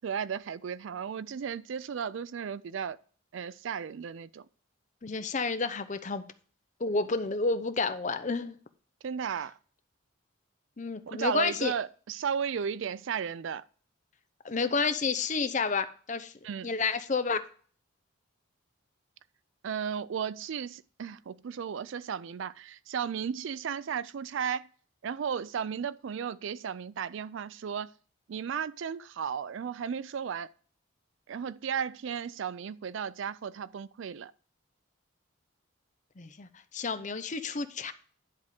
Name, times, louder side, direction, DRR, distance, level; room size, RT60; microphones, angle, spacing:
voice 1, 0.0-3.0 3.3-4.5 9.0-9.5 11.1-13.6 16.4-16.7 19.6-24.7 25.0-27.9 28.3-30.5 31.3-34.3, right 7 dB, 65° right, 0.3 m, -34 dB
voice 2, 5.0-6.2 6.8-8.6 10.8-11.7 14.4-16.3 16.6-17.4 36.2-37.9, left 4 dB, 35° left, 0.6 m, -30 dB
10.5 x 3.6 x 6.4 m
head